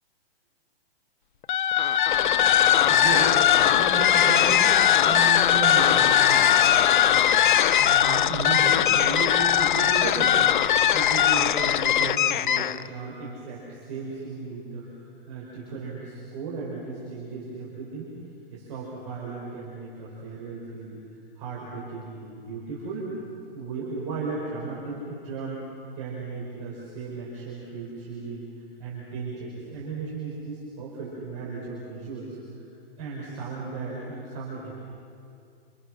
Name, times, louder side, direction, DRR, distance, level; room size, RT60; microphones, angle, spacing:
sound 1, 1.4-12.9, left 10 dB, 55° left, 0.6 m, -20 dB
voice 1, 2.7-3.4 3.8-6.5 7.5-10.5 10.9-14.9 15.3-18.1 18.5-21.0 21.4-23.0 23.5-25.6 25.9-28.4 28.8-32.4 33.0-34.7, right 4 dB, 30° right, -5 dB, 5.6 m, -35 dB
28.5 x 27.5 x 6.4 m, 2.5 s
hypercardioid pair, 170°, 30 cm